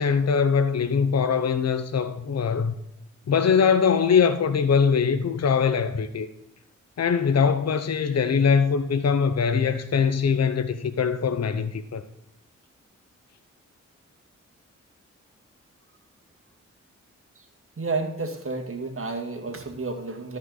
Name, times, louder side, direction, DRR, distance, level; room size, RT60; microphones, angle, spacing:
voice 1, 0.0-2.7 3.3-6.3 7.0-12.0, left 6 dB, 55° left, 0.8 m, -22 dB
voice 2, 17.8-20.4, right 3 dB, 45° right, 2.1 m, -31 dB
13.5 x 5.2 x 4.0 m
supercardioid pair, 40°, 31 cm